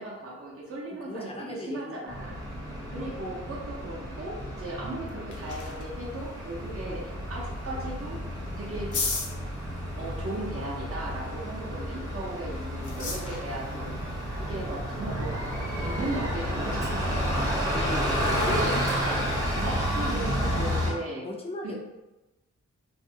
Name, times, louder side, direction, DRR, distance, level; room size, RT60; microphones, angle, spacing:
voice 1, 0.0-2.4 2.9-7.0 7.3-8.2 8.6-8.9 9.9-13.9 14.3-15.3 15.8-17.6 18.3-18.7 19.0-19.2 19.6-21.3 21.6-21.7, right 2 dB, 50° right, -4 dB, 0.7 m, -37 dB
voice 2, 1.0-1.9 2.8-3.1 3.9-4.1 6.8-7.0 11.7-11.9 13.7-13.9 17.7-18.8 19.1-19.3 19.7-19.8 21.2-21.8, left 2 dB, 20° left, 0 dB, 0.4 m, -37 dB
Bus, 2.1-20.9, equal, 10° right, 0.7 m, -31 dB
sound 1, 4.8-17.4, left 3 dB, 85° left, 0.6 m, -41 dB
2.5 x 2.1 x 2.7 m, 1.1 s
wide cardioid pair, 100°, 30 cm